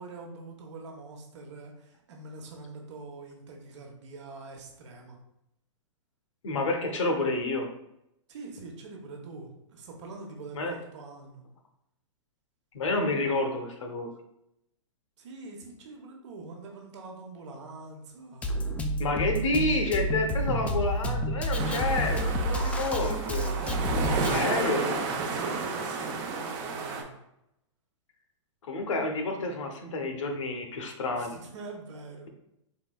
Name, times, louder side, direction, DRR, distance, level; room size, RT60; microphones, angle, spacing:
voice 1, 0.0-5.2 8.3-11.4 15.2-18.5 23.9-24.7 25.1-27.1 31.1-32.3, right 3 dB, 65° right, 1 dB, 1.0 m, -44 dB
voice 2, 6.4-7.7 10.5-10.7 12.7-14.1 19.0-23.5 24.3-25.0 28.6-31.4, left 2 dB, 70° left, 4 dB, 0.9 m, -29 dB
Drum kit, 18.4-24.4, equal, 10° left, 0.3 m, -29 dB
sound 1, 21.6-27.0, right 4 dB, 40° right, 0.7 m, -32 dB
4.3 x 3.8 x 2.3 m, 0.82 s
hypercardioid pair, 130°, 16 cm